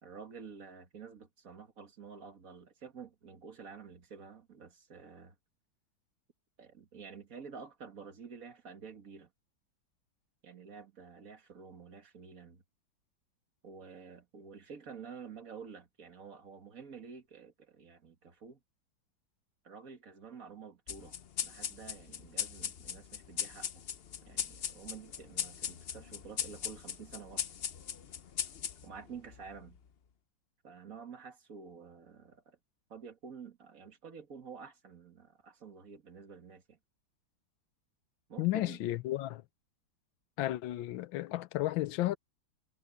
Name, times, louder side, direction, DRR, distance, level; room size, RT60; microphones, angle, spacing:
voice 1, 0.0-5.4 6.6-9.3 10.4-12.6 13.6-18.6 19.6-21.2 21.4-23.8 24.2-27.5 28.8-29.8 30.6-32.6 32.9-36.8 38.3-38.8, right 6 dB, 45° right, 2.3 m, -50 dB
sound 1, 20.9-29.8, left 8 dB, 70° left, 0.5 m, -39 dB
voice 2, 38.4-39.4 40.4-42.2, left 16 dB, 90° left, 1.4 m, -33 dB
omnidirectional pair, 2.1 m